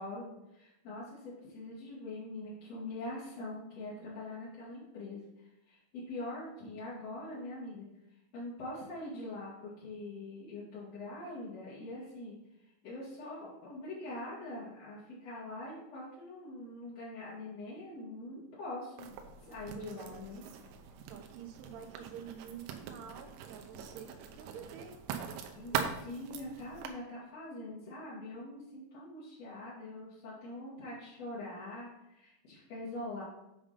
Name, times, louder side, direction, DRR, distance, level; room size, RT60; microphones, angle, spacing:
voice 1, 0.0-19.1 19.5-20.4 23.7-23.8 25.5-25.8 26.0-33.2, left 2 dB, 45° left, -9 dB, 2.4 m, -43 dB
Writing, 19.0-26.9, right 8 dB, 90° right, 3.3 m, -42 dB
voice 2, 19.7-20.2 21.1-25.0 25.7-26.1, right 7 dB, 75° right, 3 dB, 2.8 m, -48 dB
9.0 x 5.1 x 5.6 m, 0.90 s
omnidirectional pair, 5.4 m